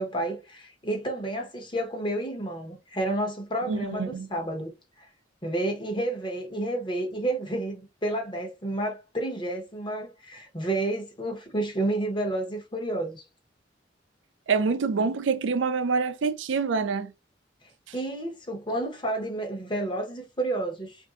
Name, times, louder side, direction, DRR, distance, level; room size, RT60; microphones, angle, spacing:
voice 1, 0.0-4.7 5.4-13.2 17.9-21.0, right 1 dB, 25° left, 1.0 m, -30 dB
voice 2, 3.7-4.3 14.5-17.1, right 5 dB, 80° right, 0.5 m, -26 dB
3.4 x 2.6 x 2.4 m
head